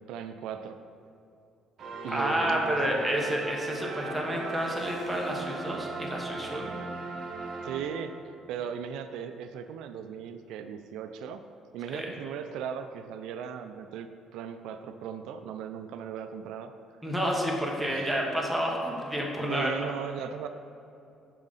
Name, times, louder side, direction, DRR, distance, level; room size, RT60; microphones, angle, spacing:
voice 1, 0.1-0.8 2.0-2.8 7.6-8.1 8.5-11.4 11.7-16.7 17.9-18.1 19.5-20.5, right 8 dB, 85° right, 9 dB, 0.3 m, -37 dB
sound 1, 1.8-8.4, right 3 dB, 55° right, 0.9 m, -38 dB
voice 2, 2.1-6.7 11.9-12.1 17.0-19.7, equal, ahead, -2 dB, 1.1 m, -30 dB
7.2 x 5.0 x 4.0 m, 2.7 s
cardioid pair, 105°, 0 cm